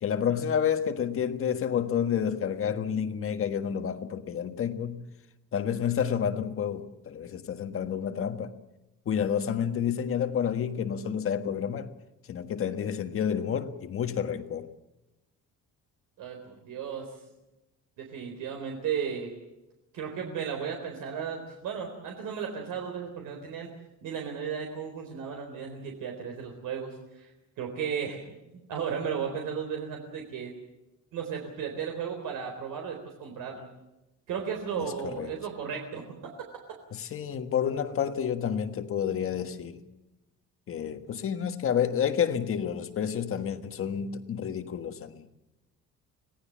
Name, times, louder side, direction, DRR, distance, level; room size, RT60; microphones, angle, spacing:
voice 1, 0.0-5.0 5.5-8.5 9.0-11.9 12.3-14.7 34.8-35.3 36.9-39.8 40.7-45.2, left 8 dB, 40° left, 1.6 m, -29 dB
voice 2, 16.2-17.1 18.0-19.3 19.9-23.7 24.0-26.9 27.2-27.3 27.6-28.4 28.7-30.5 31.1-33.7 34.3-36.3, right 7 dB, 70° right, 4.0 m, -35 dB
26.0 x 18.0 x 7.5 m
cardioid pair, 170°, 33 cm